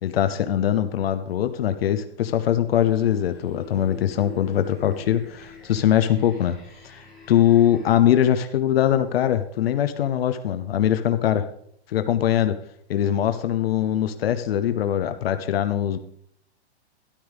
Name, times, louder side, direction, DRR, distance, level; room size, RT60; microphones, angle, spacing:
voice 1, 0.0-6.6 6.8-11.4 11.9-12.6 12.9-16.0, left 10 dB, 65° left, 9 dB, 0.9 m, -22 dB
sound 1, 2.8-7.9, left 3 dB, ahead, 4.1 m, -45 dB
13.0 x 11.5 x 3.5 m, 0.69 s
hypercardioid pair, 155°, 32 cm